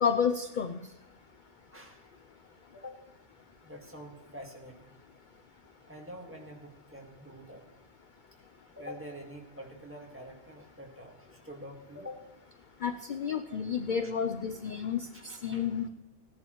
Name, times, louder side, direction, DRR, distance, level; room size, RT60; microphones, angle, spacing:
voice 1, 0.0-0.8 12.8-15.0 15.4-15.9, left 7 dB, 55° left, 9 dB, 0.6 m, -30 dB
voice 2, 1.7-2.0 2.7-2.9 3.6-4.9 5.9-7.6 8.7-11.2 11.4-12.2 13.5-13.6 15.1-15.6, equal, 10° right, 0 dB, 1.7 m, -46 dB
16.5 x 10.5 x 3.0 m, 0.96 s
omnidirectional pair, 1.2 m